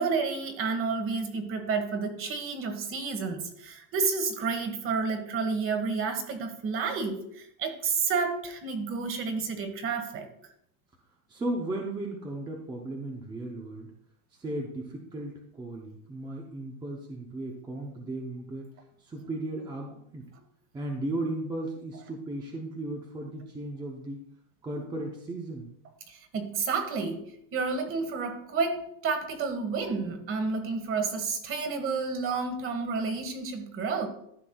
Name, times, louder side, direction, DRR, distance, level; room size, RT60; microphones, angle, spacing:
voice 1, 0.0-10.3 26.1-27.2 27.5-34.1, right 4 dB, 30° right, 7 dB, 1.4 m, -30 dB
voice 2, 11.3-13.9 14.4-18.7 19.0-20.3 20.7-24.2 24.6-25.7, right 2 dB, 10° right, 0 dB, 0.7 m, -36 dB
13.5 x 5.9 x 2.3 m, 0.72 s
supercardioid pair, 140°, 45 cm